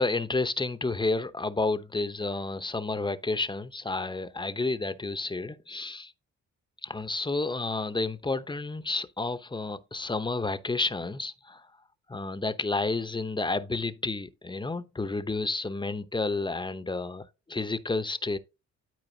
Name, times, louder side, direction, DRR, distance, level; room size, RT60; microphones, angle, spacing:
voice 1, 0.0-6.1 6.8-11.6 12.1-18.4, left 3 dB, 15° left, 0.8 m, -30 dB
12.5 x 4.7 x 2.8 m
cardioid pair, 90°, 30 cm